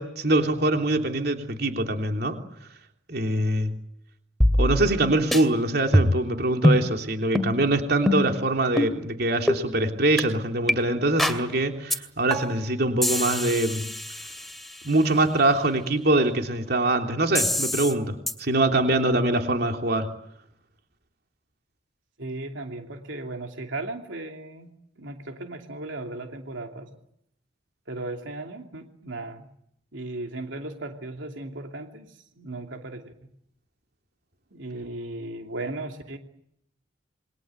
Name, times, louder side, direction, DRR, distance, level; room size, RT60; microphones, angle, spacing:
voice 1, 0.0-2.4 3.1-3.7 4.6-13.9 14.8-20.1, right 2 dB, 55° right, 4 dB, 3.3 m, -23 dB
sound 1, 4.4-5.0 5.3-5.4 5.9-6.3 6.6-6.8 7.4-7.5 8.1-8.4 8.8-8.9 9.5-9.6 10.2-10.3 10.7-10.8 11.2-11.4 11.9-12.0 12.3-12.6 13.0-14.9 17.4-17.9 18.3-18.4, left 1 dB, ahead, 2.3 m, -23 dB
voice 2, 22.2-24.7 25.0-26.9 27.9-29.5 29.9-33.1 34.5-36.2, right 2 dB, 80° right, 4 dB, 2.8 m, -36 dB
28.5 x 23.0 x 8.1 m, 0.74 s
head